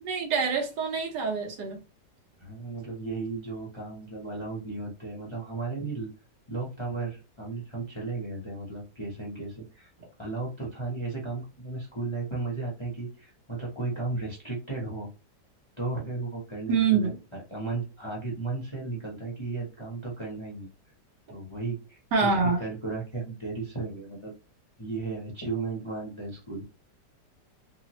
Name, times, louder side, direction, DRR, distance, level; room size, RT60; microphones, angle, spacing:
voice 1, 0.0-1.8 16.7-17.2 22.1-22.6, right 5 dB, 80° right, 1.6 m, -25 dB
voice 2, 2.4-6.1 6.5-9.9 10.2-15.1 15.8-17.1 17.5-20.7 21.3-24.3 24.8-26.6, right 3 dB, 25° left, 0.6 m, -35 dB
3.6 x 2.1 x 2.9 m
omnidirectional pair, 1.9 m